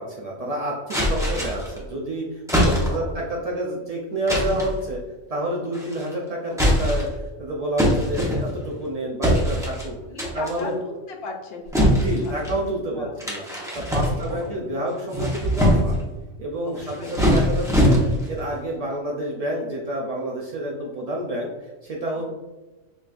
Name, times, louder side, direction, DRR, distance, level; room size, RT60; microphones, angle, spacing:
voice 1, 0.0-5.0 5.3-10.0 10.3-10.8 11.8-13.4 13.7-16.0 16.4-18.0 18.3-21.5 21.8-22.2, right 1 dB, 75° right, -2 dB, 0.3 m, -29 dB
sound 1, 0.9-1.8 2.5-3.1 4.3-4.8 5.7-6.1 6.5-7.2 7.8-8.7 9.2-9.9 10.2-10.6 11.7-12.6 13.2-14.5 14.9-16.0 16.8-18.3, equal, 5° right, 0.6 m, -22 dB
voice 2, 2.5-3.2 10.0-12.5 12.9-13.1 14.0-14.5 16.6-17.1 22.2-22.3, left 3 dB, 60° left, 1 dB, 0.8 m, -37 dB
5.1 x 2.4 x 2.4 m, 1.2 s
omnidirectional pair, 1.3 m